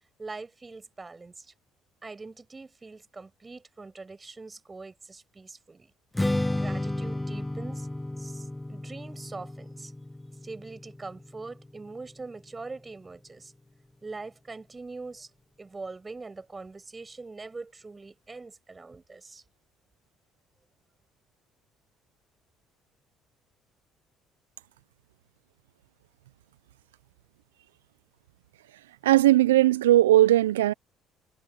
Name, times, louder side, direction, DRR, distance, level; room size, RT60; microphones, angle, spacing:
voice 1, 0.2-1.5 2.0-5.9 6.5-7.9 8.2-9.9 10.4-13.5 14.0-15.3 15.6-19.4, right 3 dB, 25° right, 8.0 m, -43 dB
Strum, 6.1-12.4, left 1 dB, 10° left, 1.7 m, -33 dB
voice 2, 29.0-30.7, right 14 dB, 85° right, 0.5 m, -18 dB
hypercardioid pair, 60°, 0 cm